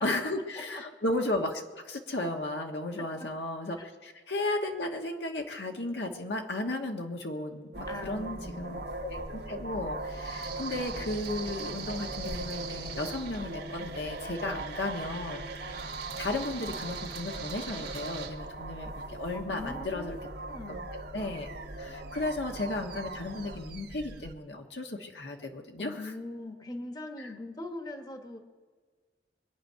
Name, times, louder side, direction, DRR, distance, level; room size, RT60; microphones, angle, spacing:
voice 1, 0.0-15.4 16.2-20.2 21.1-21.5 21.8-26.1, left 2 dB, 75° left, 2 dB, 1.5 m, -34 dB
sound 1, 7.7-24.3, right 3 dB, 65° right, 1.5 m, -39 dB
voice 2, 7.9-8.8 14.4-14.6 19.3-20.2 20.5-20.9 25.8-28.4, left 2 dB, 25° left, 5 dB, 1.2 m, -41 dB
24.0 x 9.4 x 5.7 m, 1.5 s
head